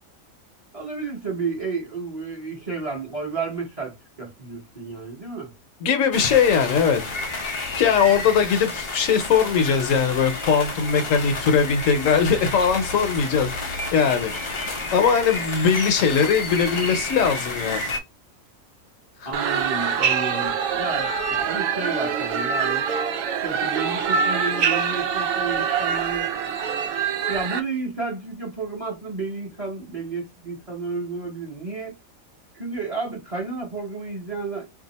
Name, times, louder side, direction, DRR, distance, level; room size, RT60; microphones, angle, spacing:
voice 1, 0.7-5.5 19.2-22.9 23.4-26.3 27.3-32.0 32.5-34.6, right 4 dB, 30° right, 0.8 m, -31 dB
voice 2, 5.8-7.0 7.8-14.3 14.9-17.8, left 6 dB, 70° left, 1.0 m, -20 dB
sound 1, 6.1-18.0, left 2 dB, 50° left, 0.3 m, -30 dB
sound 2, 19.3-27.6, right 6 dB, 75° right, 0.9 m, -24 dB
2.7 x 2.3 x 4.0 m
omnidirectional pair, 1.5 m